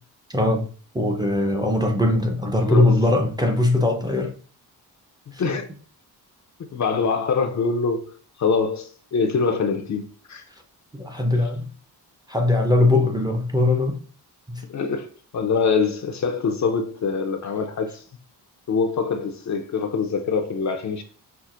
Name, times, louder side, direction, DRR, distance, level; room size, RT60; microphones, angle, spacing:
voice 1, 0.3-0.7 0.9-4.3 5.3-5.4 10.9-11.7 12.3-14.0 14.5-14.6, left 2 dB, 10° right, 0.5 m, -20 dB
voice 2, 2.6-3.0 5.4-5.6 6.7-8.1 8.4-10.4 11.3-11.5 14.7-15.1 15.3-18.0 18.7-21.0, left 5 dB, 45° left, 0.5 m, -24 dB
5.7 x 2.0 x 2.4 m
cardioid pair, 80°, 40 cm